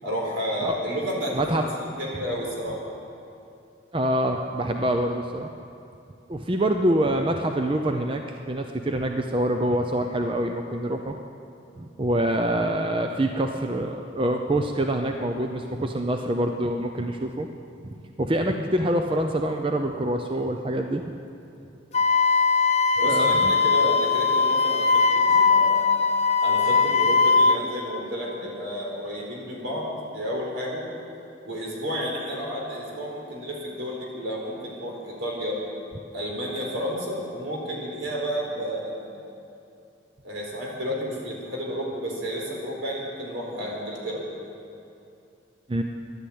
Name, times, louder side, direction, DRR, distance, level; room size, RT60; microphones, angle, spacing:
voice 1, 0.0-2.8 23.0-25.0 25.3-26.0 26.4-29.8 30.1-30.9 31.4-35.6 36.1-39.1 40.2-44.2, equal, 80° right, -2 dB, 4.2 m, -31 dB
voice 2, 1.3-1.7 3.9-5.5 6.3-11.2 11.8-17.5 17.8-21.0 23.0-23.5 45.7-45.8, right 1 dB, 25° right, 4 dB, 0.6 m, -25 dB
Wind instrument woodwind instrument, 21.9-27.6, left 4 dB, 35° left, 0.6 m, -20 dB
13.5 x 11.5 x 8.6 m, 2.7 s
head